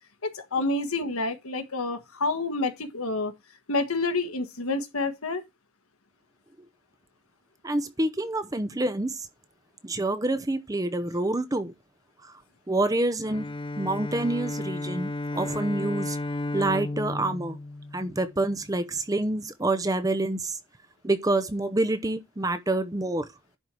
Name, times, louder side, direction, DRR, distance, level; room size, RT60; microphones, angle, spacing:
voice 1, 0.2-3.3 3.7-5.4, left 2 dB, 90° left, 1.5 m, -28 dB
voice 2, 7.6-9.3 9.8-11.7 12.2-12.4 12.7-13.5 13.8-16.2 16.5-17.6 17.9-20.6 21.0-23.3, right 2 dB, 15° right, 0.6 m, -27 dB
Bowed string instrument, 13.2-18.7, left 2 dB, 25° left, 0.5 m, -33 dB
11.0 x 4.5 x 4.7 m
head